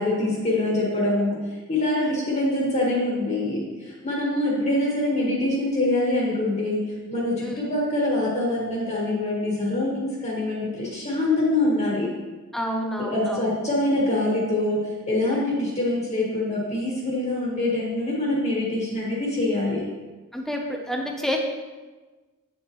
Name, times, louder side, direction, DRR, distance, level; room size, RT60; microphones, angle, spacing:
voice 1, 0.0-1.4 1.7-6.8 7.1-12.1 13.0-19.8, left 1 dB, 30° left, -5 dB, 1.7 m, -24 dB
voice 2, 12.5-13.5 20.3-21.4, equal, ahead, 1 dB, 0.8 m, -29 dB
8.6 x 7.2 x 3.1 m, 1.3 s
head